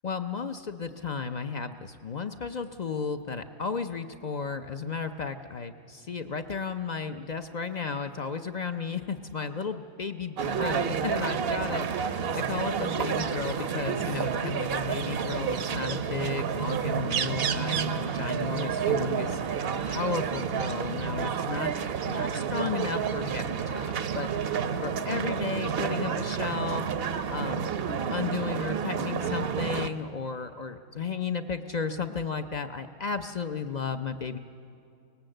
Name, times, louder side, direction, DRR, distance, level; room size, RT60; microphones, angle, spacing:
voice 1, 0.0-21.7 22.1-27.7 28.1-34.4, left 5 dB, 50° left, 8 dB, 0.5 m, -34 dB
sound 1, 10.4-29.9, right 7 dB, 55° right, 0.8 m, -30 dB
23.5 x 19.0 x 7.8 m, 2.4 s
omnidirectional pair, 1.5 m